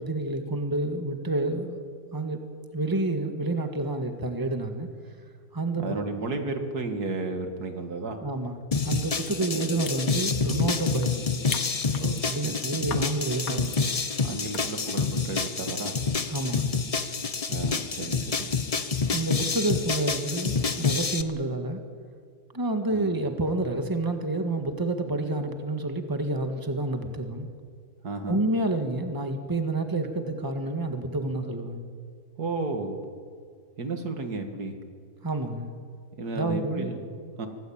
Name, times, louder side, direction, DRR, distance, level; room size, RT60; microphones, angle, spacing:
voice 1, 0.0-1.8 2.1-2.4 2.7-4.9 5.5-6.0 8.2-11.3 12.2-13.7 16.3-16.8 19.1-21.8 22.5-27.5 28.3-31.8 35.2-35.7 36.3-36.9, right 2 dB, 15° right, 6 dB, 1.7 m, -29 dB
voice 2, 5.8-8.2 9.5-9.7 12.0-12.9 14.2-15.9 17.5-18.5 22.9-23.1 28.0-28.5 32.4-33.0 33.8-34.8 36.2-37.5, right 3 dB, 85° right, 5 dB, 2.6 m, -33 dB
sound 1, 8.7-21.2, left 4 dB, 30° left, 0.8 m, -28 dB
sound 2, 9.3-9.4 9.7-11.1 11.4-12.4 12.8-13.1 13.5-13.8 14.5-14.8, left 7 dB, 70° left, 1.6 m, -38 dB
24.5 x 17.5 x 8.8 m, 2.1 s
omnidirectional pair, 1.6 m